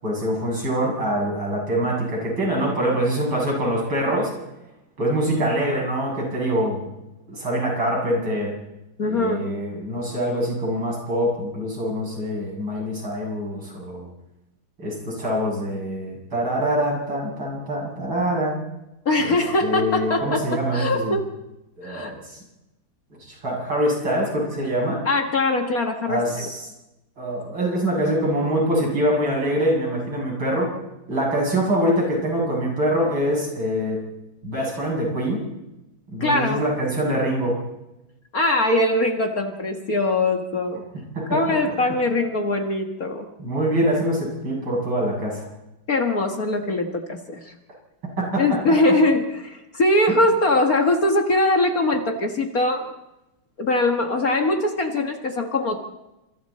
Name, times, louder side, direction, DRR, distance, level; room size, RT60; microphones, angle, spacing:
voice 1, 0.0-4.3 5.0-6.9 7.3-8.5 9.0-14.1 14.8-18.6 19.2-21.2 21.8-22.4 23.2-25.0 26.1-26.6 27.2-30.7 31.1-34.0 34.4-35.4 36.1-37.6 41.2-41.4 43.4-45.5 48.2-48.6, equal, 85° right, -2 dB, 8.6 m, -24 dB
voice 2, 9.0-9.4 19.1-21.3 21.8-22.1 25.1-26.4 36.2-36.6 38.3-40.8 41.3-43.3 45.9-47.5 48.4-52.9 53.6-55.8, left 2 dB, 50° left, 4 dB, 2.0 m, -22 dB
27.5 x 27.5 x 4.3 m, 0.96 s
omnidirectional pair, 2.1 m